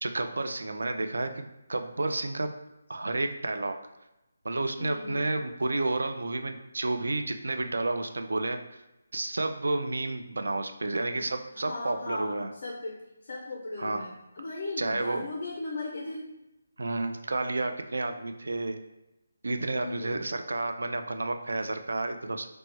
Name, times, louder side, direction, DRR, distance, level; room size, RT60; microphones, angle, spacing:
voice 1, 0.0-2.5 2.9-3.7 4.4-8.6 9.1-12.5 13.8-14.1 14.8-15.3 16.8-18.8 19.4-22.5, right 2 dB, 80° right, 7 dB, 0.3 m, -31 dB
voice 2, 4.8-5.2 11.2-16.3 19.7-20.2, left 2 dB, 35° left, -1 dB, 0.4 m, -38 dB
2.9 x 2.0 x 3.2 m, 0.94 s
hypercardioid pair, 180°, 0 cm